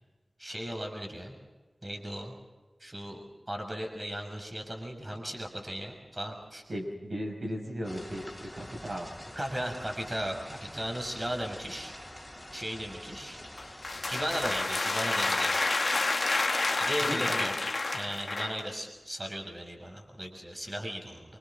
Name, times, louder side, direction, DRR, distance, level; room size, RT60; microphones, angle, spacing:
voice 1, 0.4-1.3 1.8-2.3 2.8-6.6 9.4-11.9 12.5-15.7 16.8-17.6 17.9-21.2, equal, 25° right, 2 dB, 5.9 m, -36 dB
voice 2, 6.7-9.1 17.0-17.5, equal, 65° right, 1 dB, 6.1 m, -36 dB
sound 1, 7.8-14.7, left 1 dB, 5° left, 4.5 m, -46 dB
sound 2, 13.6-18.7, left 3 dB, 60° left, 1.4 m, -29 dB
28.5 x 25.5 x 3.9 m, 1.3 s
wide cardioid pair, 55°, 0 cm